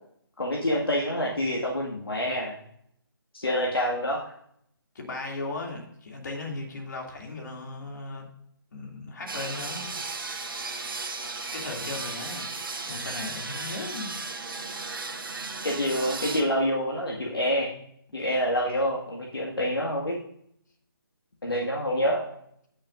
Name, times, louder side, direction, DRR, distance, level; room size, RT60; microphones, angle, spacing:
voice 1, 0.4-2.6 3.3-4.3 15.6-17.8 18.1-20.2 21.4-22.2, equal, 80° left, -3 dB, 1.9 m, -27 dB
voice 2, 4.9-8.3 8.7-9.9 11.5-12.4 12.8-14.1 14.6-14.8, left 3 dB, 50° left, 1 dB, 2.6 m, -37 dB
sound 1, 9.3-16.4, right 3 dB, 65° right, 1.6 m, -35 dB
17.0 x 6.6 x 2.6 m, 0.70 s
figure-of-eight pair, 150°, 12 cm